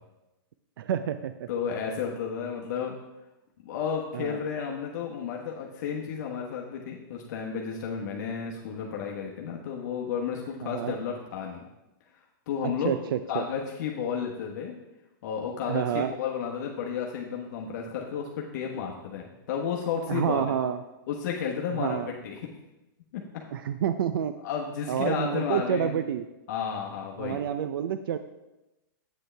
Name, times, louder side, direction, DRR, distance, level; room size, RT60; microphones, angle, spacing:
voice 1, 0.8-1.5 4.1-4.4 10.6-10.9 12.6-13.4 15.7-16.1 20.1-20.8 21.8-22.1 23.5-24.3 24.9-26.3 27.2-28.2, right 9 dB, 75° right, 10 dB, 0.5 m, -28 dB
voice 2, 1.5-2.9 3.6-11.6 12.5-12.9 13.3-14.8 15.2-20.5 21.1-22.5 23.1-23.4 24.4-26.0 26.5-27.4, left 7 dB, 50° left, -1 dB, 1.1 m, -32 dB
8.4 x 7.9 x 3.3 m, 0.99 s
hypercardioid pair, 160°, 12 cm